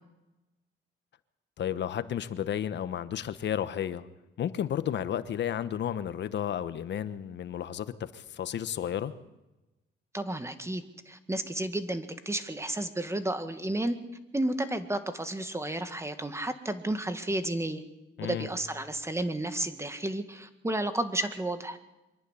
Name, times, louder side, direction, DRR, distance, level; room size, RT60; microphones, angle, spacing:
voice 1, 1.6-4.1 4.4-9.1 18.2-18.5, left 10 dB, 65° left, 13 dB, 1.2 m, -32 dB
voice 2, 10.1-14.0 14.3-17.8 18.2-21.8, right 1 dB, 15° right, 9 dB, 1.9 m, -32 dB
24.0 x 11.0 x 10.0 m, 1.0 s
cardioid pair, 90°, 20 cm